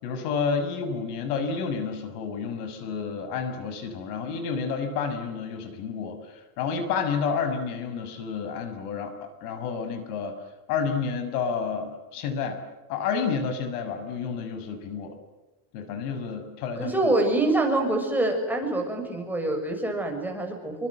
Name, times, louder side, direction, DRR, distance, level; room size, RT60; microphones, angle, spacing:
voice 1, 0.0-10.3 10.7-12.6 12.9-15.1 15.7-17.1, left 5 dB, 80° left, 10 dB, 6.5 m, -30 dB
voice 2, 16.8-20.9, right 2 dB, 5° right, 2 dB, 7.0 m, -25 dB
29.0 x 25.0 x 7.9 m, 1.1 s
supercardioid pair, 145°, 45 cm